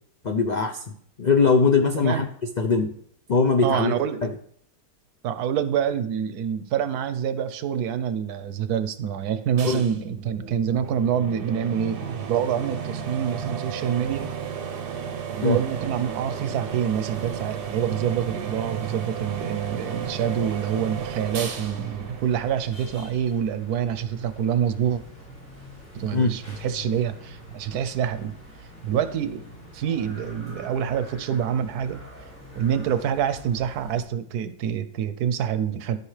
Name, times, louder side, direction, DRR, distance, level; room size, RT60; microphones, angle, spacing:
voice 1, 0.2-0.8 1.2-2.3 2.6-2.9 3.3-3.9 4.2-4.3 9.6-9.9 15.4-15.6 26.1-26.3, left 4 dB, 80° left, 4 dB, 0.4 m, -21 dB
voice 2, 3.6-4.3 5.2-14.3 15.4-25.0 25.9-28.3 28.8-29.4 29.7-32.0 32.6-36.0, right 8 dB, 80° right, 11 dB, 1.2 m, -26 dB
sound 1, 9.6-23.1, right 7 dB, 45° right, 0.8 m, -34 dB
sound 2, 15.3-34.0, equal, 55° left, 4.5 m, -45 dB
13.5 x 5.3 x 3.3 m, 0.64 s
omnidirectional pair, 1.7 m